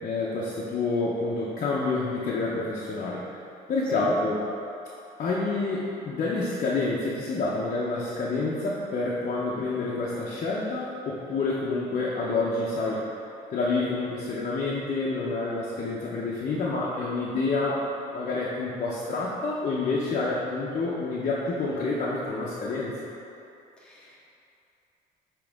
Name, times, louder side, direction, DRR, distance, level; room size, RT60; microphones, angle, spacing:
voice 1, 0.0-3.2 3.7-4.4 5.2-13.0 13.5-17.8 18.1-22.9, left 3 dB, 45° left, -6 dB, 0.8 m, -28 dB
voice 2, 23.8-24.2, left 2 dB, 5° left, -7 dB, 1.5 m, -47 dB
8.8 x 3.0 x 3.6 m, 2.8 s
cardioid pair, 110°, 17 cm